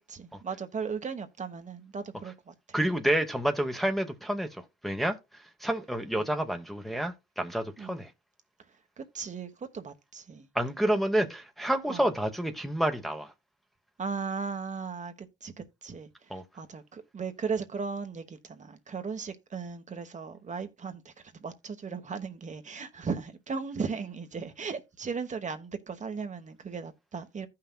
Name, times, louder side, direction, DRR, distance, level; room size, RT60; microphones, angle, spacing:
voice 1, 0.1-2.8 6.2-6.3 7.8-8.0 9.0-10.5 11.2-11.3 11.9-12.1 14.0-16.1 16.5-21.1 21.4-27.5, right 5 dB, 35° right, 1.1 m, -37 dB
voice 2, 2.7-5.2 5.6-8.1 10.5-13.3 16.3-16.4, right 1 dB, ahead, 1.0 m, -29 dB
15.0 x 5.8 x 2.2 m
cardioid pair, 90°, 20 cm